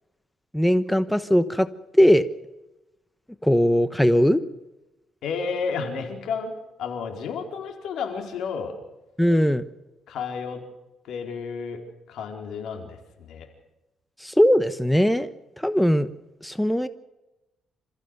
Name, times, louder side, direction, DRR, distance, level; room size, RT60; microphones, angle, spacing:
voice 1, 0.5-1.7 2.0-2.2 3.4-4.4 9.2-9.6 14.2-15.3 15.6-16.1 16.4-16.9, equal, 5° left, 12 dB, 1.0 m, -19 dB
voice 2, 5.2-6.5 6.8-8.7 10.1-10.6 11.1-11.8 12.1-13.5, left 5 dB, 75° left, 4 dB, 4.4 m, -31 dB
27.5 x 15.0 x 6.7 m, 0.98 s
cardioid pair, 90°, 0 cm